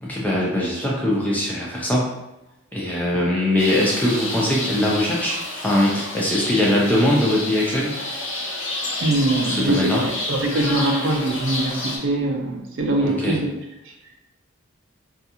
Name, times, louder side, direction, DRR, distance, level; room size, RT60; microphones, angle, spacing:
voice 1, 0.0-2.2 2.7-8.0 9.4-10.0 13.0-13.4, left 1 dB, 5° left, -4 dB, 0.4 m, -21 dB
sound 1, 3.6-12.0, left 2 dB, 70° left, 0.7 m, -29 dB
voice 2, 9.0-13.5, right 2 dB, 60° right, 1 dB, 0.4 m, -22 dB
2.4 x 2.4 x 2.8 m, 0.90 s
head